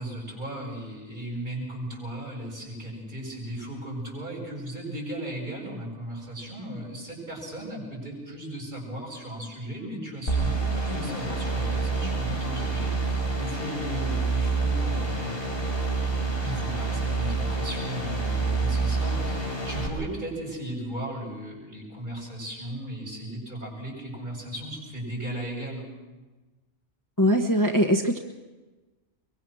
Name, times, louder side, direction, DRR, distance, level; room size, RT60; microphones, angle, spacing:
voice 1, 0.0-15.3 16.4-25.8, right 1 dB, 45° right, -2 dB, 8.2 m, -36 dB
sound 1, 10.3-19.9, right 3 dB, 55° left, 4.1 m, -27 dB
voice 2, 27.2-28.2, equal, 15° left, 3 dB, 1.2 m, -21 dB
24.0 x 23.0 x 6.3 m, 1.2 s
omnidirectional pair, 1.2 m